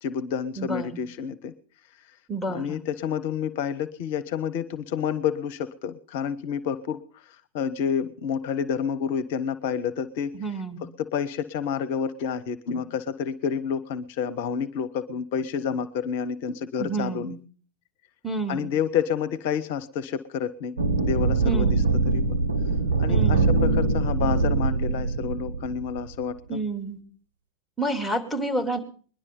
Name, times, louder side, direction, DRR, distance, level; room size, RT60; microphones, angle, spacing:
voice 1, 0.0-1.5 1.9-2.2 2.5-10.4 11.0-17.3 18.5-20.7 21.0-21.8 22.1-22.4 23.0-26.6, left 7 dB, 50° left, 14 dB, 0.7 m, -29 dB
voice 2, 0.6-1.0 2.3-2.8 10.3-10.8 16.8-17.4 18.2-18.7 21.4-21.9 23.1-23.5 26.5-27.0 27.8-28.8, right 2 dB, 5° right, 3 dB, 3.0 m, -29 dB
sound 1, 20.8-26.1, right 3 dB, 75° right, 1.3 m, -23 dB
21.0 x 11.0 x 5.4 m, 0.43 s
figure-of-eight pair, 90°, 0 cm